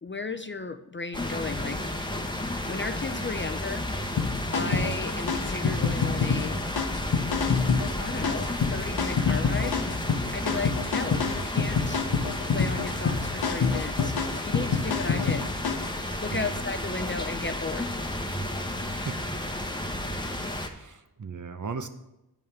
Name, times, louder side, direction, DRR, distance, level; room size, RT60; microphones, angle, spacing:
voice 1, 0.0-1.8 2.7-3.9 4.5-6.6 8.0-9.8 10.3-12.0 12.5-14.1 14.4-15.5 16.2-18.0, left 4 dB, 30° left, 10 dB, 0.5 m, -34 dB
sound 1, 1.1-20.7, left 1 dB, 10° left, 1.1 m, -32 dB
sound 2, 4.2-16.0, left 5 dB, 65° left, 0.8 m, -27 dB
voice 2, 4.6-4.9 10.5-10.7 16.3-16.6 18.7-19.2 20.7-21.9, right 5 dB, 45° right, 9 dB, 0.9 m, -37 dB
9.4 x 5.5 x 6.7 m, 0.92 s
wide cardioid pair, 70°, 40 cm